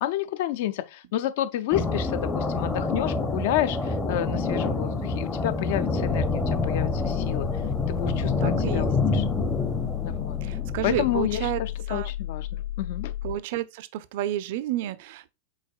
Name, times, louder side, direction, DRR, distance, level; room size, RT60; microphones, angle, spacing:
voice 1, 0.0-7.5 7.9-9.3 10.0-10.4 10.8-13.1, left 12 dB, 50° left, 0.4 m, -30 dB
sound 1, 1.7-11.5, left 3 dB, 15° left, 0.7 m, -27 dB
sound 2, 6.0-13.4, left 13 dB, 75° left, 2.0 m, -33 dB
voice 2, 8.4-8.9 10.4-11.6 11.9-12.1 13.2-15.3, right 13 dB, 50° right, 0.4 m, -30 dB
4.9 x 4.0 x 2.3 m
figure-of-eight pair, 90°, 0 cm